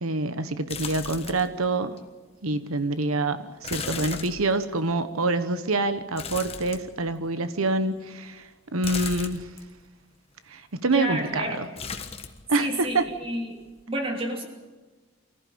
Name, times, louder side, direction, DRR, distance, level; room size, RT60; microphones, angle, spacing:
voice 1, 0.0-2.0 2.4-9.5 10.5-11.6 12.5-13.0, right 2 dB, 90° right, 11 dB, 1.2 m, -26 dB
sound 1, 0.7-1.6 2.0-2.1 3.6-4.9 6.2-7.3 8.8-9.7 11.8-12.5 12.7-13.4 13.7-13.8, left 5 dB, 30° left, 1.4 m, -36 dB
voice 2, 10.9-11.6 12.6-13.6 13.9-14.5, equal, 25° right, 2 dB, 3.0 m, -30 dB
24.5 x 15.0 x 8.7 m, 1.3 s
head